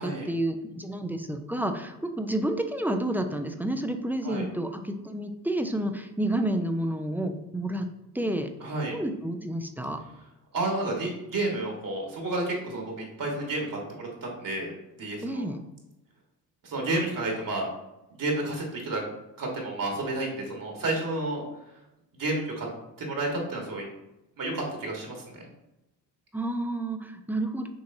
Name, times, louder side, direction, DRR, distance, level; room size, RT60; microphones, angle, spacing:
voice 1, 0.0-7.9 8.1-8.5 8.9-10.0 15.2-15.6 26.3-27.7, right 1 dB, 5° right, 6 dB, 0.4 m, -30 dB
voice 2, 8.6-8.9 10.5-14.7 15.0-15.5 16.6-17.7 18.1-19.0 19.4-21.4 22.1-22.7 23.0-23.9 24.4-25.4, right 2 dB, 50° right, 0 dB, 1.5 m, -31 dB
6.3 x 2.9 x 2.6 m, 0.92 s
supercardioid pair, 60°, 41 cm